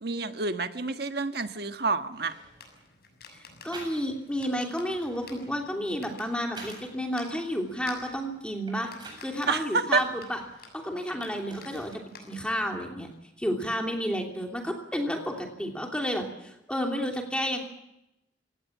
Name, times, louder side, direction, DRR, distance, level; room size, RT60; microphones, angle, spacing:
voice 1, 0.0-2.3 9.5-10.0, right 4 dB, 60° right, 8 dB, 1.4 m, -28 dB
sound 1, 2.1-2.9 3.7-4.3 4.7-7.0 7.5-9.3 9.9-12.1 12.4-13.1, right 3 dB, 25° right, 7.8 m, -49 dB
sound 2, 2.5-12.7, left 4 dB, 55° left, 6.9 m, -51 dB
voice 2, 3.3-8.9 9.2-10.4 10.7-11.9 12.2-13.1 13.4-17.6, equal, 5° left, 2 dB, 2.9 m, -31 dB
27.5 x 17.5 x 7.3 m, 0.87 s
head